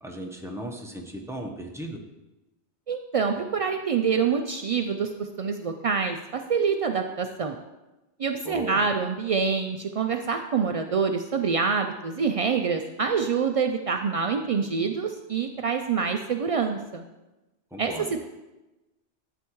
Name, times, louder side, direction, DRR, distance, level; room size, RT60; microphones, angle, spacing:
voice 1, 0.0-2.0 8.4-8.8 17.7-18.1, right 1 dB, 5° right, 1 dB, 0.9 m, -36 dB
voice 2, 2.9-7.6 8.2-17.0 17.8-18.2, right 5 dB, 65° right, 5 dB, 0.3 m, -26 dB
11.5 x 8.0 x 3.1 m, 1.0 s
omnidirectional pair, 1.2 m